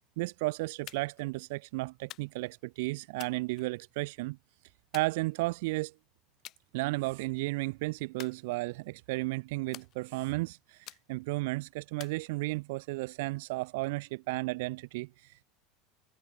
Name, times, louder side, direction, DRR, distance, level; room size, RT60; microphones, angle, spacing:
voice 1, 0.2-4.4 4.9-5.9 6.7-15.4, right 23 dB, 70° right, 0.4 m, -34 dB
sound 1, 0.9-1.3 2.1-2.6 3.2-4.1 4.9-5.7 6.4-6.6 7.0-7.4 8.2-9.0 9.7-10.4 10.9-11.4 12.0-12.8, left 15 dB, 35° left, 7.7 m, -50 dB
cardioid pair, 175°, 0 cm